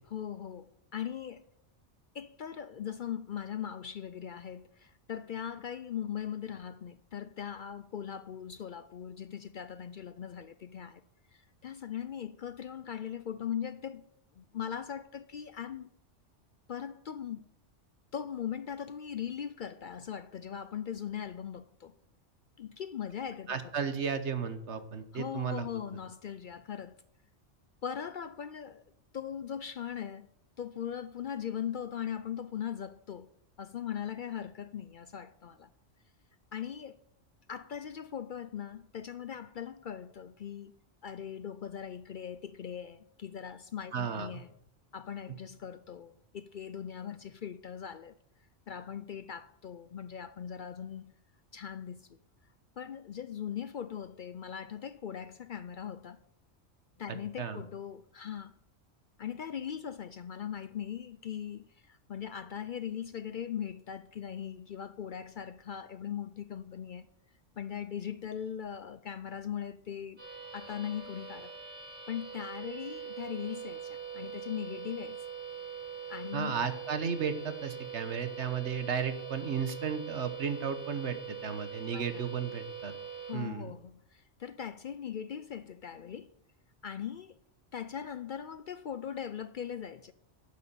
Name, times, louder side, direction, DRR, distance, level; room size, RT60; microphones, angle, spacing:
voice 1, 0.1-1.5 2.1-11.0 11.3-14.1 14.4-15.9 16.7-17.4 18.1-21.9 22.6-23.6 25.1-27.0 27.8-28.8 29.1-30.3 30.6-33.3 33.6-35.7 36.5-37.0 37.5-40.7 41.0-44.5 44.9-48.1 48.7-51.1 51.5-52.2 52.8-56.2 57.0-58.5 59.2-67.1 67.6-70.2 70.5-71.5 72.1-75.2 76.1-76.5 81.9-82.2 83.3-86.3 86.8-87.4 87.7-90.1, left 9 dB, 55° left, 0.6 m, -40 dB
voice 2, 23.5-25.7 43.9-44.3 57.4-57.6 76.3-82.9 83.3-83.7, right 6 dB, 75° right, 1.4 m, -34 dB
sound 1, 70.2-83.3, right 7 dB, 45° right, 3.8 m, -43 dB
12.0 x 8.4 x 6.8 m
omnidirectional pair, 1.2 m